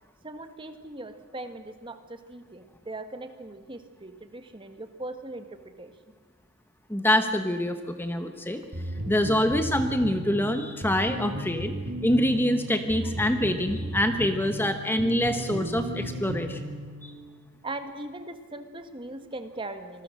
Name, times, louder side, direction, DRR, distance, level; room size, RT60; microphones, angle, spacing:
voice 1, 0.2-5.9 17.6-20.0, right 2 dB, 25° right, 8 dB, 1.4 m, -39 dB
voice 2, 6.9-8.6 9.1-11.7 12.0-16.7 17.0-17.1, left 1 dB, 10° left, 7 dB, 1.0 m, -25 dB
sound 1, 8.7-17.2, right 1 dB, 50° right, 5.1 m, -35 dB
27.0 x 20.5 x 6.5 m, 1.5 s
head